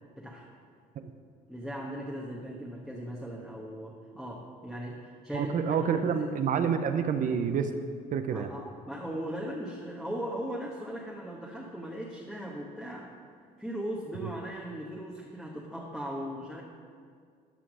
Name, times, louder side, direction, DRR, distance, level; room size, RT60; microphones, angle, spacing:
voice 1, 0.2-0.5 1.5-6.2 8.3-13.2 13.6-16.6, equal, ahead, -3 dB, 1.3 m, -38 dB
voice 2, 5.3-7.7 8.1-8.5, right 7 dB, 50° right, 8 dB, 0.7 m, -28 dB
13.0 x 5.8 x 6.2 m, 2.1 s
cardioid pair, 110°, 17 cm